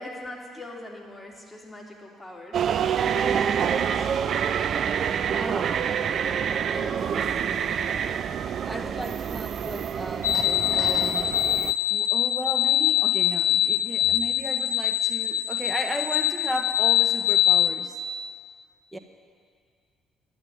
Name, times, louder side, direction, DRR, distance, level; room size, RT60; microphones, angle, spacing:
voice 1, 0.0-4.5 8.8-9.1, left 1 dB, 15° left, -2 dB, 3.2 m, -42 dB
sound 1, 2.5-11.7, right 8 dB, 50° right, 0.4 m, -27 dB
voice 2, 5.4-8.0 8.6-11.3 11.9-18.0 18.9-19.0, right 1 dB, 10° right, 5 dB, 1.5 m, -36 dB
sound 2, 10.2-17.7, left 12 dB, 80° left, 0.4 m, -23 dB
11.5 x 9.6 x 9.3 m, 2.1 s
figure-of-eight pair, 50°, 0 cm